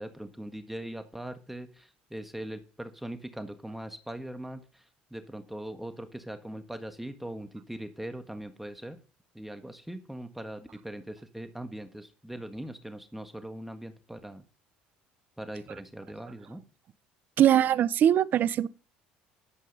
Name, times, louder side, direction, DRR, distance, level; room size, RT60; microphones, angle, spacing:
voice 1, 0.0-9.0 9.3-14.4 15.4-16.6, right 1 dB, 5° right, 1.6 m, -41 dB
voice 2, 17.4-18.7, right 10 dB, 50° right, 0.7 m, -22 dB
11.5 x 8.4 x 5.4 m
hypercardioid pair, 70°, 4 cm